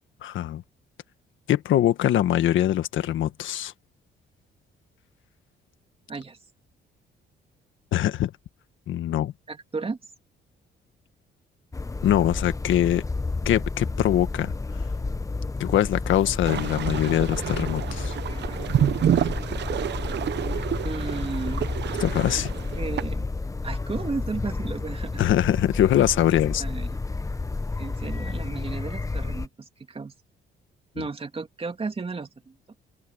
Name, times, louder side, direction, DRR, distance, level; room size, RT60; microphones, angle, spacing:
voice 1, 0.2-0.6 1.5-3.7 7.9-8.3 8.9-9.3 12.0-13.0 13.4-14.5 15.6-18.2 22.0-22.5 25.2-26.6, left 12 dB, 75° left, 1.5 m, -23 dB
voice 2, 9.5-10.0 20.8-21.7 22.8-23.3 23.6-25.2 26.6-27.0 27.8-30.1 30.9-32.5, right 4 dB, 30° right, 2.9 m, -34 dB
sound 1, 11.7-29.5, left 3 dB, 15° left, 0.9 m, -31 dB
sound 2, 16.4-23.0, right 10 dB, 60° right, 0.9 m, -28 dB
cardioid pair, 90°, 20 cm